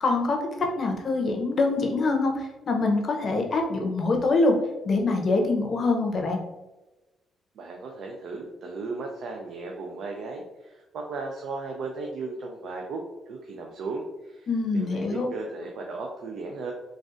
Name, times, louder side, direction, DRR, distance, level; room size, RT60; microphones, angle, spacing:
voice 1, 0.0-4.5 4.8-6.4 14.5-15.3, left 3 dB, 50° left, 2 dB, 0.7 m, -24 dB
voice 2, 7.6-14.5 14.7-16.7, right 3 dB, 70° right, 1 dB, 0.4 m, -36 dB
3.9 x 2.4 x 2.5 m, 1.0 s
cardioid pair, 90°, 0 cm